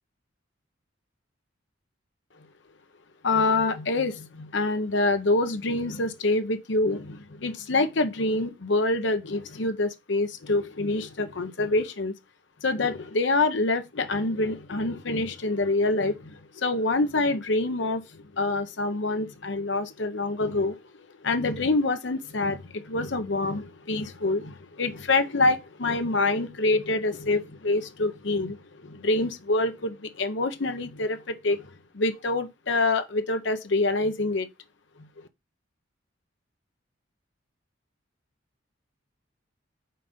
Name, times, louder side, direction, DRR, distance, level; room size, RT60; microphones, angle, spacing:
voice 1, 3.2-12.1 12.6-20.8 21.2-28.6 28.8-31.7 31.9-34.5 35.0-35.2, left 2 dB, 70° left, 0.8 m, -26 dB
5.7 x 4.0 x 5.1 m
head